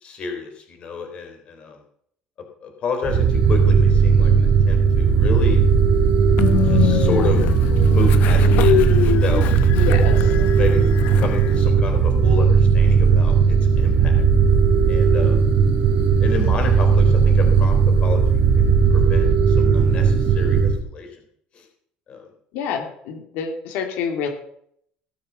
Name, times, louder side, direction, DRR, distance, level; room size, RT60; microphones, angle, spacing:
voice 1, 0.0-1.8 2.6-5.6 6.6-7.4 7.9-9.5 10.5-10.8 11.2-14.2 14.9-15.4 16.2-18.2 18.6-21.1 22.1-22.3, left 5 dB, 35° left, 4 dB, 3.5 m, -30 dB
sound 1, 3.0-20.8, right 5 dB, 45° right, 3.5 m, -16 dB
Train, 6.4-11.7, left 10 dB, 60° left, 1.1 m, -23 dB
voice 2, 9.7-10.5 22.5-24.3, left 6 dB, 75° left, 3 dB, 2.7 m, -27 dB
19.0 x 7.3 x 6.8 m, 0.66 s
cardioid pair, 165°, 3 cm